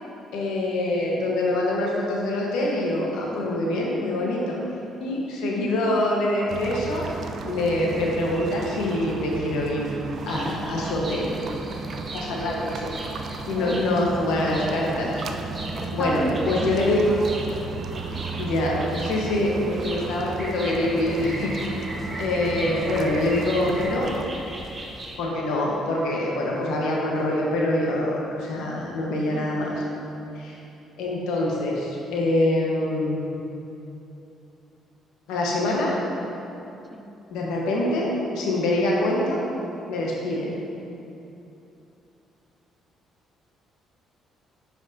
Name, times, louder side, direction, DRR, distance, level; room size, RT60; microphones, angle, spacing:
voice 1, 0.3-4.6 5.0-9.9 10.2-11.3 12.1-12.9 13.5-15.2 15.9-17.0 18.4-21.5 22.2-24.1 25.2-29.7 30.3-30.6 31.0-33.3 35.3-36.0 37.3-39.4 39.9-40.6, left 1 dB, 80° left, -2 dB, 1.1 m, -25 dB
sound 1, 6.5-24.2, right 4 dB, 60° right, 0.4 m, -34 dB
sound 2, 10.1-25.2, right 1 dB, 30° right, 1.1 m, -39 dB
voice 2, 13.5-14.1 15.7-17.7 29.3-29.6 36.9-37.1, equal, 5° right, 2 dB, 0.6 m, -33 dB
9.1 x 4.9 x 2.7 m, 2.8 s
supercardioid pair, 70°, 0 cm